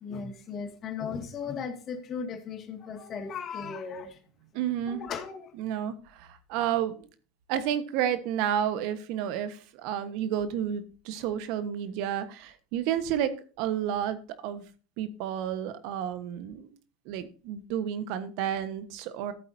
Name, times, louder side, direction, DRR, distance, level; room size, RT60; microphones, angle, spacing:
voice 1, 0.0-4.2 4.9-5.5, left 6 dB, 40° left, 7 dB, 2.0 m, -36 dB
voice 2, 4.5-5.0 5.6-7.1 7.5-13.3 13.6-14.2 14.4-14.6 15.0-16.7 17.1-19.3, right 10 dB, 65° right, 12 dB, 1.3 m, -31 dB
14.0 x 8.3 x 2.8 m, 0.37 s
hypercardioid pair, 95°, 0 cm